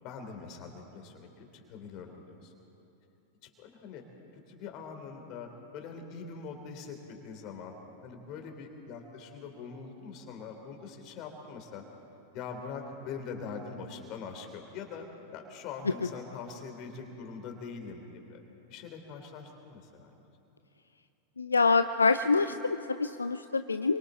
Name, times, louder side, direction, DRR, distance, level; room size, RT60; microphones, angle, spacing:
voice 1, 0.0-2.5 3.6-4.0 4.3-7.7 8.0-11.8 12.3-15.1 15.3-18.4 18.7-20.1, left 5 dB, 40° left, 4 dB, 3.5 m, -43 dB
voice 2, 21.4-24.0, left 4 dB, 75° left, 10 dB, 0.5 m, -26 dB
29.5 x 24.0 x 4.1 m, 2.9 s
figure-of-eight pair, 90°, 0 cm